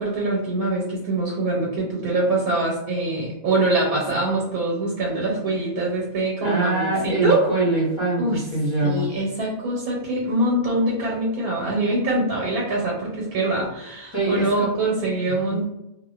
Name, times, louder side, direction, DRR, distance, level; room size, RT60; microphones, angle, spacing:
voice 1, 0.0-7.4 8.2-8.4 8.8-15.7, right 2 dB, 85° right, -3 dB, 1.1 m, -24 dB
voice 2, 6.4-9.1 14.1-14.5 15.3-15.6, right 2 dB, 35° left, -8 dB, 0.4 m, -24 dB
2.5 x 2.1 x 2.3 m, 0.88 s
omnidirectional pair, 1.5 m